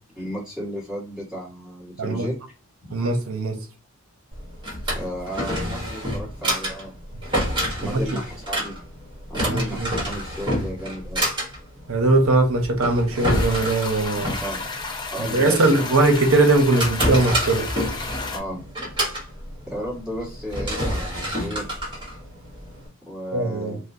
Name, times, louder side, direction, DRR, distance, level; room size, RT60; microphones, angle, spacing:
voice 1, 0.1-2.3 2.8-2.9 4.9-6.9 7.7-8.7 9.3-11.3 14.4-14.7 15.1-15.7 18.3-18.6 19.7-21.8 23.1-23.8, equal, 5° right, 1.6 m, -33 dB
voice 2, 2.9-3.6 7.9-8.0 9.5-9.9 11.9-14.3 15.3-17.7 23.3-23.8, right 2 dB, 65° right, 0.8 m, -20 dB
Drawer open or close, 4.3-22.9, equal, 20° right, 1.4 m, -28 dB
sound 1, 13.3-18.4, left 3 dB, 20° left, 0.5 m, -33 dB
4.2 x 2.1 x 2.7 m
head